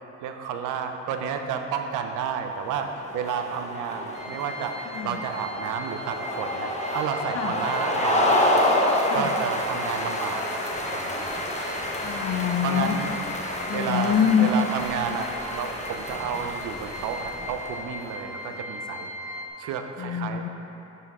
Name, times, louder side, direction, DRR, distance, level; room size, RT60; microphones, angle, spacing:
voice 1, 0.2-2.9 3.1-8.5 9.1-10.6 10.9-11.3 12.6-13.2 13.7-20.4, right 7 dB, 90° right, 6 dB, 0.6 m, -31 dB
sound 1, 2.6-18.3, left 1 dB, 25° left, 0.9 m, -29 dB
sound 2, 4.1-19.5, equal, 85° left, 1.3 m, -40 dB
voice 2, 12.0-13.0 13.7-14.5 20.0-20.5, left 9 dB, 45° left, 9 dB, 0.4 m, -24 dB
10.5 x 4.4 x 3.6 m, 2.9 s
cardioid pair, 90°, 30 cm